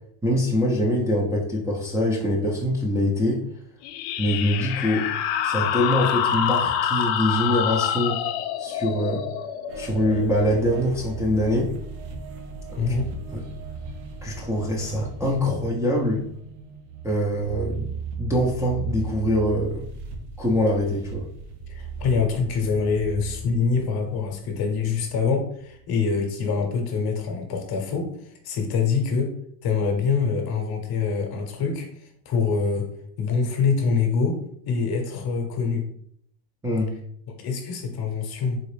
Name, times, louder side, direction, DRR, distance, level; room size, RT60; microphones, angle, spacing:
voice 1, 0.2-3.4 4.2-5.1 5.4-8.2 8.6-9.3 9.8-11.7 12.9-13.0 13.3-13.4 14.2-16.3 17.0-19.9 20.4-21.3 36.6-37.0, left 1 dB, 5° right, -5 dB, 0.5 m, -24 dB
sound 1, 3.8-11.1, left 9 dB, 65° left, 0.5 m, -27 dB
sound 2, 9.7-25.2 25.6-25.9, right 4 dB, 65° right, 0.9 m, -37 dB
voice 2, 12.8-13.1 21.7-29.4 29.6-32.9 33.2-35.9 37.4-38.6, left 5 dB, 45° left, 4 dB, 0.9 m, -25 dB
3.9 x 2.4 x 3.2 m, 0.67 s
supercardioid pair, 120°, 50 cm